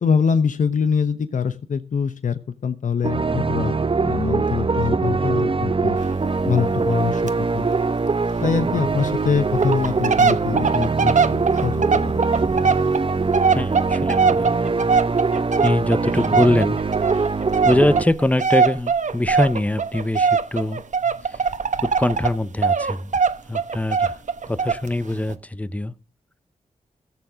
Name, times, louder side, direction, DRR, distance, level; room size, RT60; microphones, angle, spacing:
voice 1, 0.0-6.0 6.4-7.7 8.4-12.1, left 6 dB, 70° left, 0.9 m, -24 dB
sound 1, 3.0-18.0, right 4 dB, 45° right, 0.8 m, -22 dB
sound 2, 6.0-6.1 6.4-6.5 6.8-7.0 7.3-7.4 7.7-7.8 8.4-8.5 9.0-9.1 9.5-22.4 22.6-24.9 25.3-25.4, right 5 dB, 70° right, 1.2 m, -21 dB
voice 2, 13.5-14.9 15.4-16.8 17.1-17.2 17.6-20.8 21.3-21.4 21.8-23.1 23.5-24.2 24.5-25.9, left 1 dB, 10° left, 0.8 m, -23 dB
15.0 x 7.1 x 6.2 m
cardioid pair, 45°, 13 cm